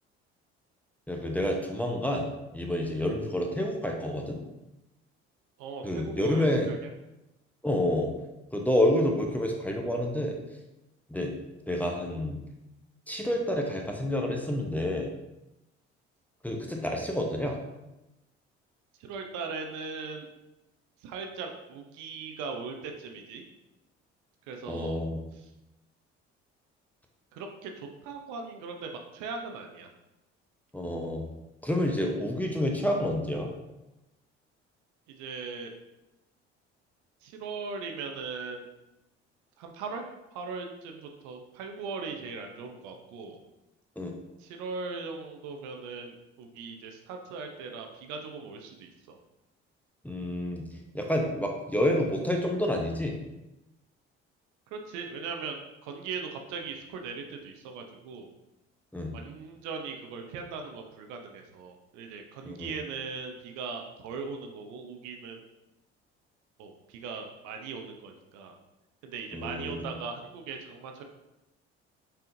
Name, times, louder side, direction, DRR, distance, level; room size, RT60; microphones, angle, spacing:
voice 1, 1.1-4.4 5.8-6.7 7.6-8.1 8.5-10.4 11.1-11.3 11.7-12.4 13.1-15.1 16.4-17.6 24.7-25.2 30.7-31.2 31.6-33.5 44.0-44.1 50.0-50.6 50.9-53.2 58.9-59.2 62.4-62.7 69.3-69.8, left 1 dB, 5° left, 1 dB, 0.8 m, -28 dB
voice 2, 5.6-6.8 19.0-20.3 21.0-23.4 24.5-25.1 25.3-25.5 27.3-29.9 35.1-35.7 37.2-38.7 39.6-43.4 44.4-49.2 54.7-58.3 59.1-65.4 66.6-68.5 69.0-71.0, right 4 dB, 60° right, 4 dB, 0.7 m, -39 dB
5.6 x 3.5 x 2.6 m, 0.95 s
hypercardioid pair, 55°, 33 cm